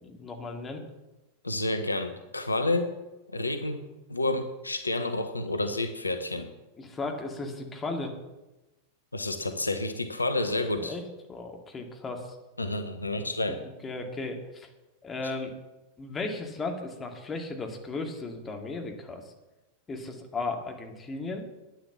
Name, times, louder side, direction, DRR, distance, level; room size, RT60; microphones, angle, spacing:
voice 1, 0.0-0.8 6.8-8.1 10.8-11.0 11.3-12.4 13.1-14.7 15.0-15.5 16.0-19.2 19.9-21.5, left 3 dB, 20° left, 3 dB, 2.2 m, -36 dB
voice 2, 1.4-2.9 3.3-3.8 4.1-6.5 9.1-10.9 12.6-13.6, left 2 dB, 80° left, 8 dB, 0.9 m, -29 dB
10.5 x 9.8 x 7.0 m, 1.0 s
figure-of-eight pair, 90°, 0 cm